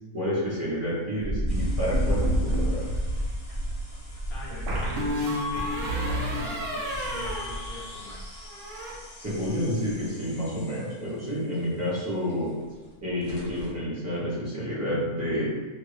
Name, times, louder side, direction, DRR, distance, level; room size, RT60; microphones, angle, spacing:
voice 1, 0.1-2.8 9.2-12.5 13.0-15.5, equal, 15° right, -9 dB, 0.8 m, -29 dB
sound 1, 1.2-8.3 8.7-9.6 9.9-10.0 10.4-10.5 12.5-12.6 12.9-13.0 13.2-13.7, right 1 dB, 85° right, 0.4 m, -30 dB
sound 2, 1.5-12.9, left 2 dB, 45° left, 0.9 m, -48 dB
sound 3, 1.9-2.8 4.7-8.2 8.5-8.9, left 1 dB, 55° right, 0.7 m, -31 dB
voice 2, 4.3-8.3, left 1 dB, 75° left, -2 dB, 1.2 m, -43 dB
2.8 x 2.5 x 3.2 m, 1.3 s
omnidirectional pair, 1.5 m